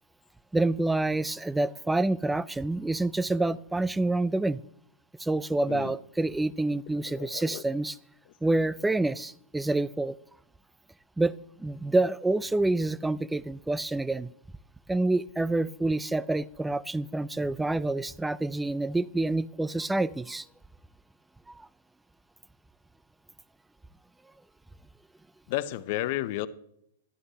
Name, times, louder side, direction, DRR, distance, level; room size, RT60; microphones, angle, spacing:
voice 1, 0.5-4.6 5.2-8.0 8.4-10.2 11.2-14.3 14.9-20.5 21.5-21.7, right 2 dB, 5° right, 0.3 m, -27 dB
voice 2, 7.1-7.6 25.5-26.5, left 15 dB, 55° left, 0.6 m, -32 dB
11.5 x 11.0 x 2.8 m
hypercardioid pair, 125°, 0 cm